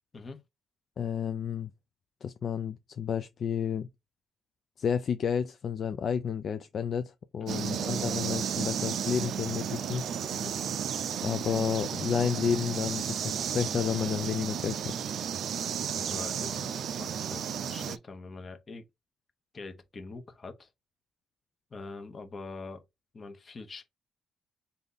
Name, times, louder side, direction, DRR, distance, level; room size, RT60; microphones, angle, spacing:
voice 1, 1.0-1.7 2.2-3.9 4.8-10.1 11.2-14.9, left 7 dB, 55° left, 0.3 m, -31 dB
sound 1, 7.5-18.0, right 8 dB, 65° right, 0.4 m, -33 dB
voice 2, 15.9-18.9 19.5-20.7 21.7-22.8 23.1-23.9, left 3 dB, 35° left, 0.9 m, -44 dB
3.4 x 2.7 x 3.9 m
cardioid pair, 90°, 0 cm